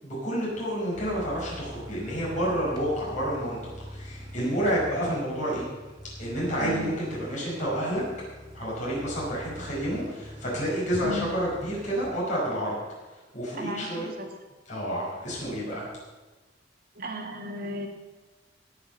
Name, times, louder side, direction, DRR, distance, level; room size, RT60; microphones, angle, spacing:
voice 1, 0.0-5.7 6.2-8.0 8.5-12.8 13.1-14.1 14.7-15.9, equal, 40° left, -7 dB, 5.4 m, -29 dB
sound 1, 0.9-12.1, equal, 20° right, 2.6 m, -44 dB
voice 2, 6.6-6.9 11.0-11.3 13.5-14.3 17.0-17.9, equal, 50° right, 3 dB, 1.9 m, -35 dB
17.0 x 6.4 x 6.8 m, 1.2 s
head